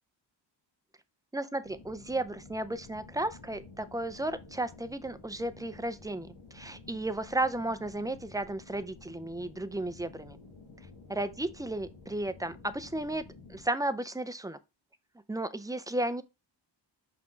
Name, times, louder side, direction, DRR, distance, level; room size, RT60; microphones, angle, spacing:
voice 1, 1.3-10.4 11.1-13.2 13.5-14.6 15.3-16.2, right 1 dB, 10° right, 0.4 m, -34 dB
sound 1, 1.6-13.6, left 3 dB, 80° left, 1.8 m, -52 dB
5.9 x 5.2 x 3.2 m
wide cardioid pair, 125°, 45 cm